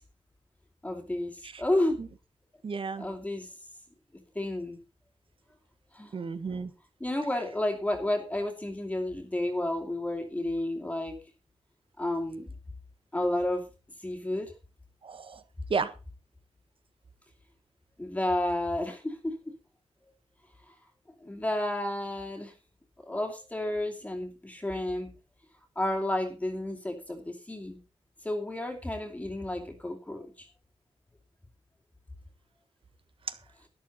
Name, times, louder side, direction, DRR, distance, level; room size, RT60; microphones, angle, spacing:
voice 1, 0.8-2.0 3.0-3.5 4.3-4.8 5.9-6.1 7.0-11.1 12.0-12.4 13.1-13.6 14.0-14.5 18.0-19.4 21.2-22.5 23.0-25.1 25.8-27.8 28.2-30.5, left 1 dB, 15° left, 2.5 m, -31 dB
voice 2, 2.6-3.1 6.1-6.7 15.0-15.4 15.7-15.9 33.3-33.4, right 5 dB, 55° right, 1.4 m, -33 dB
12.5 x 12.0 x 4.2 m
wide cardioid pair, 140°, 11 cm